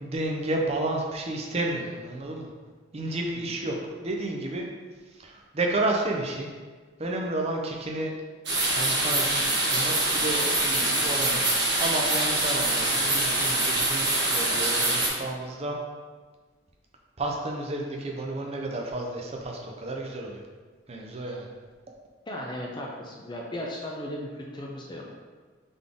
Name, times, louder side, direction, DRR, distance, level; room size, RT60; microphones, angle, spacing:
voice 1, 0.0-2.5 2.9-3.8 4.0-4.7 5.1-6.5 7.0-8.1 8.7-11.4 11.8-15.8 17.2-20.4 20.9-21.5, right 2 dB, 30° right, 0 dB, 0.5 m, -31 dB
sound 1, 8.5-15.1, right 2 dB, 60° right, 1.3 m, -24 dB
voice 2, 22.3-25.1, left 1 dB, 25° left, -1 dB, 0.4 m, -36 dB
3.9 x 3.4 x 3.6 m, 1.5 s
head